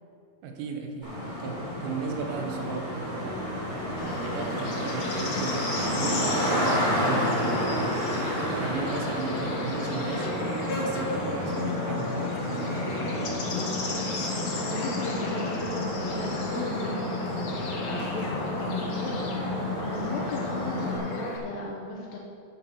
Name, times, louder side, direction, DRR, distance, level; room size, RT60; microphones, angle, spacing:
voice 1, 0.4-3.3 4.0-8.1 8.6-10.4 10.8-13.2, right 4 dB, 85° right, 3 dB, 3.7 m, -36 dB
Traffic noise roadway noise, 1.0-21.0, left 1 dB, 15° right, 1.8 m, -31 dB
sound 1, 2.3-13.8 14.4-14.5 15.0-15.2 15.7-15.8 16.3-16.4 16.9-17.1 17.6-17.7 18.4-18.5 19.2-19.3 20.0-20.1 20.8-20.9, right 2 dB, 65° right, 2.3 m, -40 dB
Bird / Insect, 4.0-21.4, left 2 dB, 55° left, 2.2 m, -35 dB
voice 2, 14.3-16.9 17.2-22.2, left 3 dB, 75° left, -2 dB, 2.6 m, -37 dB
11.5 x 5.9 x 7.1 m, 2.6 s
omnidirectional pair, 5.8 m